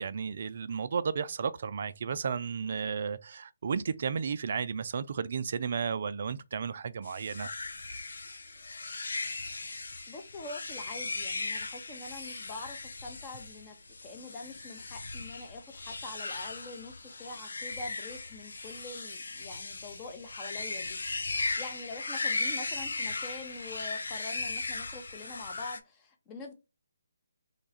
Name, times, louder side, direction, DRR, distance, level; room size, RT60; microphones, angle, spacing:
voice 1, 0.0-7.5, right 6 dB, 50° right, 0.3 m, -33 dB
sound 1, 7.0-25.8, left 3 dB, 70° left, 0.6 m, -37 dB
voice 2, 10.1-13.8 14.0-21.0 21.6-26.5, left 3 dB, 20° left, 0.8 m, -45 dB
3.2 x 2.3 x 3.9 m
figure-of-eight pair, 150°, 0 cm